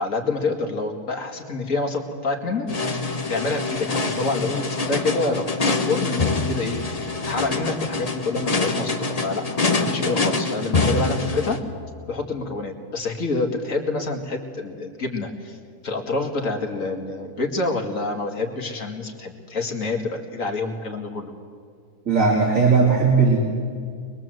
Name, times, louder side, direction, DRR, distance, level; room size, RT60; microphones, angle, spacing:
voice 1, 0.0-11.6 12.1-15.6 15.8-21.3, left 3 dB, 55° left, 3 dB, 2.5 m, -27 dB
sound 1, 2.7-11.6, left 3 dB, 25° left, 1.1 m, -25 dB
voice 2, 22.1-23.4, right 4 dB, 55° right, -3 dB, 3.2 m, -17 dB
24.0 x 21.5 x 7.8 m, 2.2 s
omnidirectional pair, 1.6 m